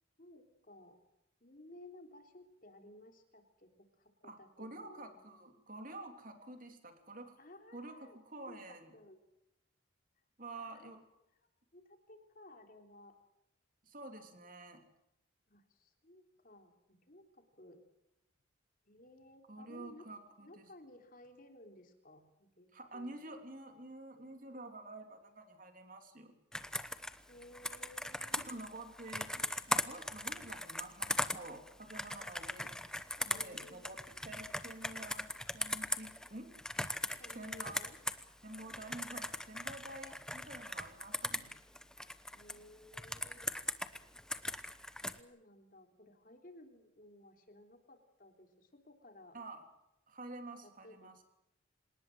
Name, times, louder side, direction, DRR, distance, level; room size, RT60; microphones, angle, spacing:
voice 1, 0.2-1.0 1.4-5.2 7.4-9.2 10.6-10.9 11.7-13.2 15.5-17.8 18.9-20.1 20.4-23.1 27.3-28.5 33.3-33.9 37.2-38.0 42.3-43.5 45.0-49.4 50.6-51.2, left 1 dB, 45° left, 5 dB, 3.4 m, -57 dB
voice 2, 4.2-7.4 7.7-8.9 10.4-11.0 13.8-14.8 19.5-20.7 22.7-26.3 28.4-32.7 33.2-36.5 37.3-37.8 38.4-41.5 49.3-49.6 50.1-51.1, right 2 dB, 45° right, 6 dB, 3.2 m, -49 dB
Computer keyboard, 26.5-38.2 38.5-42.5 42.9-45.2, left 1 dB, 5° left, 0.9 m, -39 dB
27.0 x 19.0 x 7.8 m, 0.88 s
head